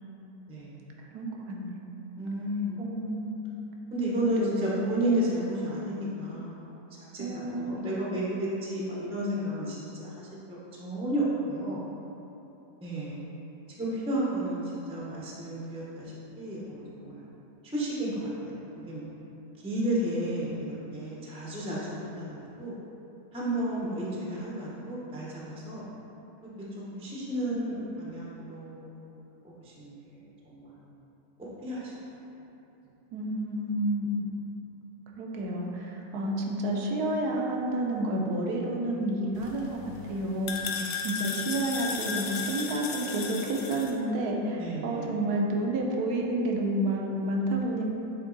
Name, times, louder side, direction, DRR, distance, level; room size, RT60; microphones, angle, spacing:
voice 1, 1.1-1.8 2.8-3.3 4.4-4.8 7.2-7.8 33.1-34.3 35.1-40.6 41.0-47.9, right 1 dB, 65° right, 0 dB, 1.2 m, -30 dB
voice 2, 2.2-2.8 3.9-6.6 7.1-7.2 7.6-10.3 10.8-11.8 12.8-13.2 13.8-14.6 14.9-17.2 17.7-18.5 18.9-19.0 19.6-20.6 20.9-22.8 23.3-25.8 26.9-28.8 29.4-30.0 30.5-30.7 31.6-31.9 40.7-40.9 44.6-45.2, right 1 dB, 5° right, -6 dB, 0.5 m, -32 dB
sound 1, 39.3-43.9, left 5 dB, 85° left, 1.3 m, -35 dB
8.0 x 3.4 x 3.9 m, 3.0 s
omnidirectional pair, 1.9 m